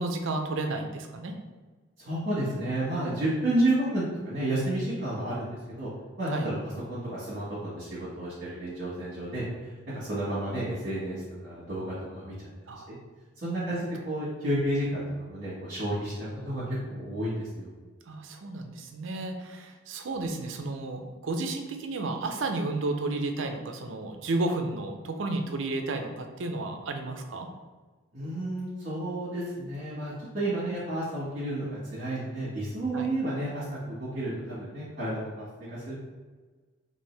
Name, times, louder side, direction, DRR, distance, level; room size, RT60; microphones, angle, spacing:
voice 1, 0.0-1.3 6.3-6.5 12.7-13.0 18.1-27.5 32.9-33.1, right 2 dB, 65° right, 5 dB, 0.5 m, -32 dB
voice 2, 2.0-5.9 6.2-6.6 6.9-12.5 12.9-13.0 13.4-17.7 28.1-35.9, right 1 dB, 45° right, -10 dB, 1.4 m, -31 dB
4.5 x 2.6 x 3.3 m, 1.3 s
head